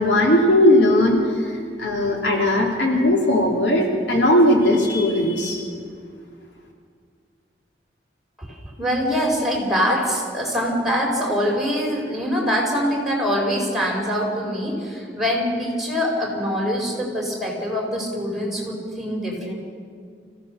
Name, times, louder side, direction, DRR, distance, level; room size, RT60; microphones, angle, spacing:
voice 1, 0.0-5.6, left 1 dB, 90° left, 0 dB, 3.2 m, -18 dB
voice 2, 8.4-19.5, equal, ahead, -1 dB, 4.7 m, -24 dB
25.5 x 16.0 x 6.6 m, 2.2 s
head